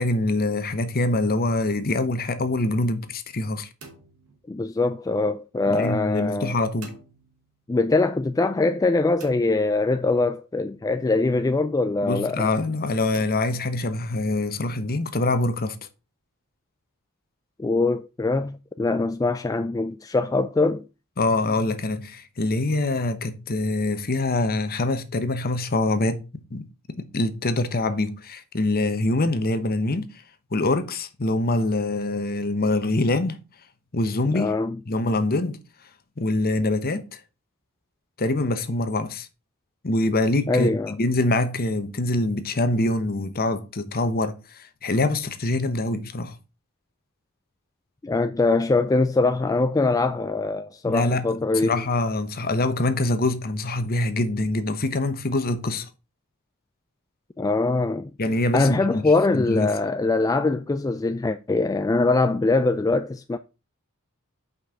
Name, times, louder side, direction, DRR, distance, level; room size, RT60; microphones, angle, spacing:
voice 1, 0.0-3.7 5.7-6.9 12.0-15.8 21.2-26.2 26.5-30.1 30.5-33.4 33.9-34.5 34.9-35.6 36.2-37.2 38.2-39.3 39.8-46.3 50.9-51.2 51.6-55.9 58.2-59.0 59.3-59.7, left 2 dB, 45° left, 1.0 m, -24 dB
sound 1, 3.8-5.1 6.8-7.8 9.2-10.4 13.1-14.3, right 3 dB, 80° right, 2.7 m, -49 dB
voice 2, 4.5-6.5 7.7-12.5 17.6-20.8 34.3-34.8 40.5-40.9 48.0-51.8 57.4-58.1 58.5-63.4, left 3 dB, 15° left, 0.3 m, -23 dB
6.1 x 5.4 x 5.6 m
head